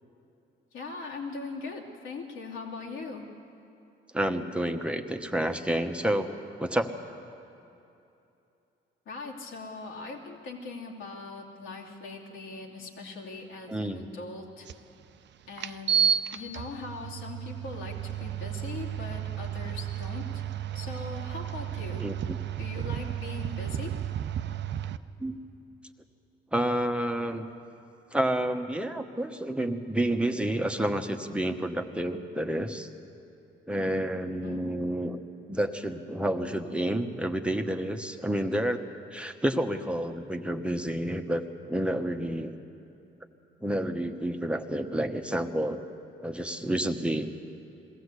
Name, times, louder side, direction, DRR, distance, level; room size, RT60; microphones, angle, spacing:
voice 1, 0.7-3.2 9.1-14.7 15.5-16.0 16.3-20.4 20.7-22.0 22.6-23.9 34.4-34.6, left 3 dB, 85° left, -2 dB, 2.8 m, -40 dB
voice 2, 4.1-6.3 6.6-6.9 13.7-14.0 22.0-22.4 25.2-25.4 26.5-27.4 28.1-32.9 33.7-35.2 35.5-38.8 39.1-41.4 41.7-42.5 43.6-45.8 46.2-47.3, right 1 dB, 5° right, 4 dB, 1.1 m, -29 dB
air conditioner turn on, 14.7-14.8 15.6-25.0, right 8 dB, 65° right, 0.6 m, -32 dB
21.5 x 15.5 x 8.2 m, 2.8 s
cardioid pair, 90°, 20 cm